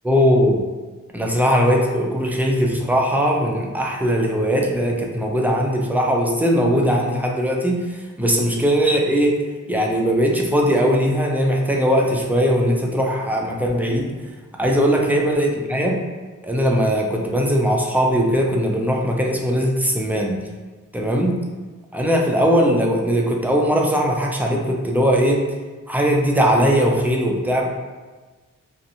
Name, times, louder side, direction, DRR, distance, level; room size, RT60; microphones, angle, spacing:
voice 1, 0.0-0.6 1.1-9.4 9.7-14.1 14.6-16.0 16.4-20.4 20.9-21.4 21.9-25.4 25.9-27.7, equal, 5° right, 0 dB, 0.4 m, -19 dB
2.7 x 2.1 x 2.5 m, 1.3 s
wide cardioid pair, 55°, 33 cm